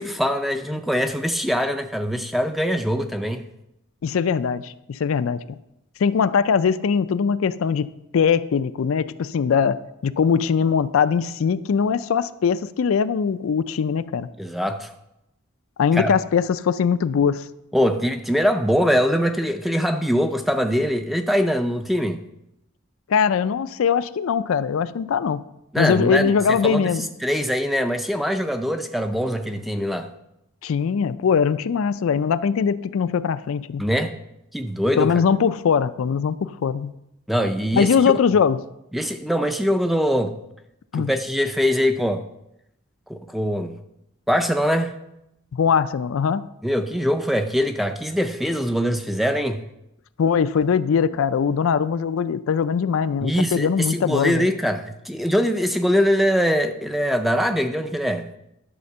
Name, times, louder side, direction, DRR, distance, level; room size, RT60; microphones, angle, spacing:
voice 1, 0.0-3.4 14.4-14.9 15.9-16.2 17.7-22.2 25.7-26.9 27.2-30.1 33.8-34.2 34.5-35.1 37.3-38.0 38.9-40.3 41.0-42.2 43.1-43.8 44.3-44.9 46.6-49.6 53.2-58.3, equal, ahead, 7 dB, 0.4 m, -22 dB
voice 2, 4.0-5.6 6.0-7.9 8.1-14.3 15.8-17.5 23.1-25.4 25.8-27.1 30.6-33.8 35.0-36.9 37.7-38.6 40.9-41.1 45.5-46.4 50.2-54.5, left 6 dB, 80° left, 14 dB, 0.4 m, -21 dB
11.0 x 4.3 x 6.7 m, 0.86 s
head